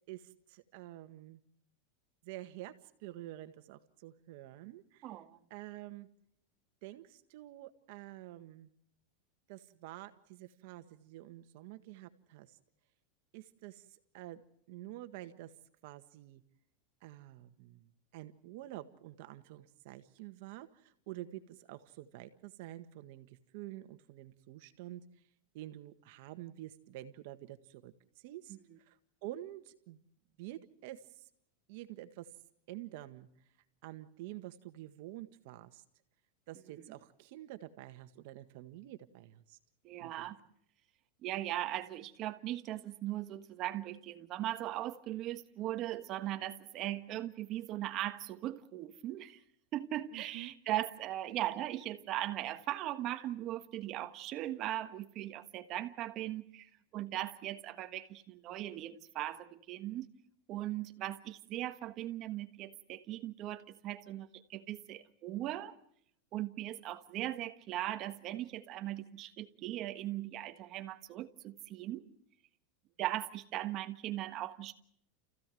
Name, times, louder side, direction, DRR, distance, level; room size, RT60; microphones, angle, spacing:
voice 1, 0.1-1.4 2.2-5.1 5.5-6.1 6.8-8.7 9.5-12.6 13.3-14.4 14.7-15.5 15.8-16.4 17.0-25.0 25.5-30.0 30.4-31.3 31.7-32.3 32.7-33.3 33.8-35.8 36.5-39.6 40.0-40.3 50.1-50.6, right 15 dB, 60° right, 1.6 m, -48 dB
voice 2, 5.0-5.4 28.7-28.8 36.8-36.9 39.8-40.4 41.2-49.4 49.7-60.1 60.5-65.7 66.3-72.0 73.0-74.7, right 14 dB, 35° right, 1.3 m, -39 dB
29.5 x 15.5 x 7.7 m
supercardioid pair, 150°, 0 cm